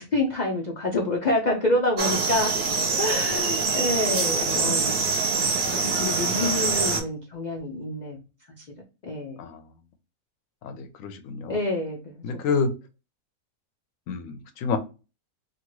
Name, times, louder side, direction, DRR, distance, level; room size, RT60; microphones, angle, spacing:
voice 1, 0.0-2.6 3.0-5.0 5.9-8.2 8.6-8.7 9.0-9.4 11.5-12.2 12.5-12.6, left 2 dB, 90° left, 0 dB, 0.4 m, -27 dB
sound 1, 2.0-7.0, right 4 dB, 50° right, 0.6 m, -24 dB
voice 2, 4.4-4.7 9.4-9.6 10.6-11.6 12.2-12.7 14.1-14.8, left 5 dB, 70° left, 8 dB, 0.9 m, -29 dB
2.7 x 2.5 x 3.0 m, 0.31 s
omnidirectional pair, 1.6 m